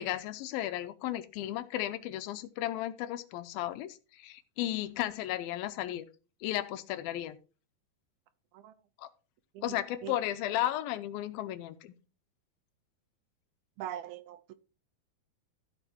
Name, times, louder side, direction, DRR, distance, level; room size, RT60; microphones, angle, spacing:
voice 1, 0.0-6.0 6.4-7.4 9.0-9.1 9.6-11.9, left 13 dB, 80° left, 2.5 m, -34 dB
voice 2, 9.5-10.1 13.8-14.5, right 11 dB, 80° right, 2.5 m, -42 dB
14.0 x 5.0 x 4.4 m
omnidirectional pair, 4.3 m